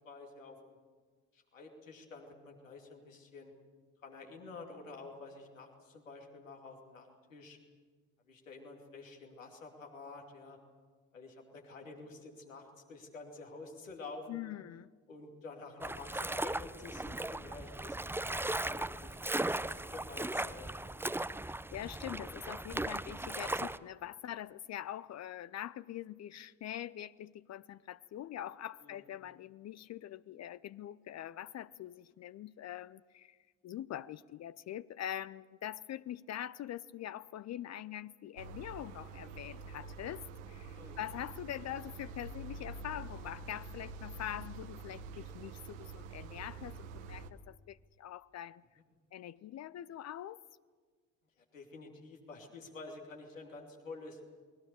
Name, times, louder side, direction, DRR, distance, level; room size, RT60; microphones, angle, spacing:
voice 1, 0.0-0.8 1.3-3.5 4.0-7.6 8.3-10.6 11.1-14.4 15.1-19.2 19.6-20.9 28.8-29.0 40.7-41.0 51.5-54.2, left 3 dB, 85° left, 1 dB, 2.7 m, -49 dB
voice 2, 14.3-14.9 21.7-33.4 33.6-48.6 49.1-50.4, left 11 dB, 45° left, 16 dB, 0.6 m, -44 dB
sound 1, 15.8-23.8, right 2 dB, 5° right, 0.7 m, -37 dB
sound 2, 38.4-47.3, right 4 dB, 75° right, 1.2 m, -47 dB
28.5 x 21.0 x 6.9 m, 1.5 s
figure-of-eight pair, 45°, 38 cm